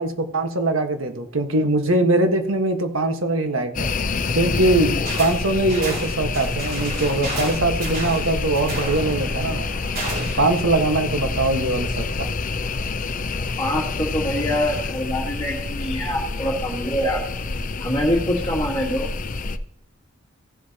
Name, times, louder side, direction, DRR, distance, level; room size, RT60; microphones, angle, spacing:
voice 1, 0.0-3.9 4.3-9.7 10.4-12.3, right 2 dB, 85° right, 6 dB, 1.4 m, -22 dB
sound 1, 3.7-19.6, left 4 dB, 40° left, 0.6 m, -27 dB
sound 2, 5.1-5.4 5.7-10.5, right 2 dB, 50° right, 4.5 m, -32 dB
voice 2, 13.6-17.2 17.8-19.1, equal, 20° left, -2 dB, 1.6 m, -24 dB
16.0 x 8.0 x 2.9 m, 0.72 s
head